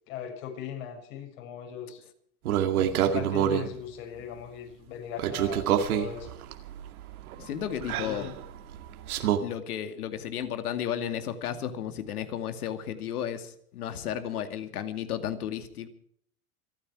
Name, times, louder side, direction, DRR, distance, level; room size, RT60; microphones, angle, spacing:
voice 1, 0.1-2.0 2.8-6.3 8.0-8.3, left 8 dB, 60° left, 2 dB, 6.9 m, -39 dB
sound 1, 2.4-3.7 5.2-9.4, right 10 dB, 80° right, 2.3 m, -27 dB
voice 2, 7.4-8.3 9.4-15.9, left 9 dB, 85° left, 8 dB, 2.5 m, -33 dB
27.0 x 9.8 x 4.9 m, 0.64 s
supercardioid pair, 130°, 43 cm